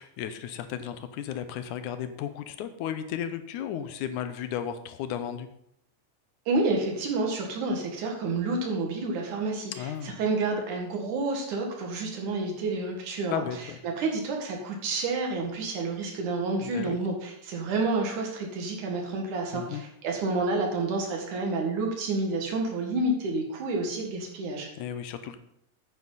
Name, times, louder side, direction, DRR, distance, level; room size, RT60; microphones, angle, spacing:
voice 1, 0.0-5.5 9.8-10.2 13.3-13.8 16.6-17.0 19.5-19.8 24.8-25.4, left 9 dB, 85° left, 10 dB, 2.3 m, -34 dB
voice 2, 6.5-13.4 13.8-24.7, right 3 dB, 85° right, 1 dB, 3.3 m, -29 dB
9.6 x 9.5 x 4.0 m, 0.73 s
omnidirectional pair, 3.4 m